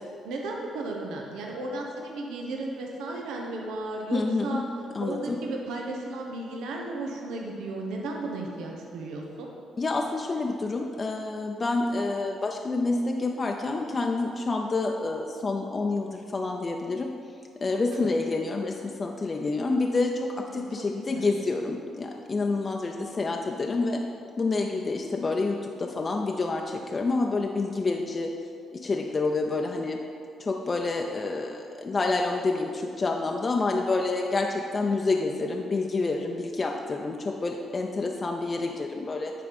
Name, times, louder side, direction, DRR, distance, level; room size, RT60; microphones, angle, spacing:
voice 1, 0.2-4.6 5.0-9.5 17.9-18.1 20.5-20.8 21.1-21.3, right 2 dB, 85° right, 0 dB, 0.8 m, -34 dB
voice 2, 4.1-4.6 4.9-5.4 9.8-17.1 17.6-24.0 24.4-28.3 28.7-30.0 30.4-39.3, left 3 dB, 35° left, 2 dB, 0.5 m, -28 dB
9.5 x 3.8 x 5.2 m, 2.4 s
cardioid pair, 90°, 0 cm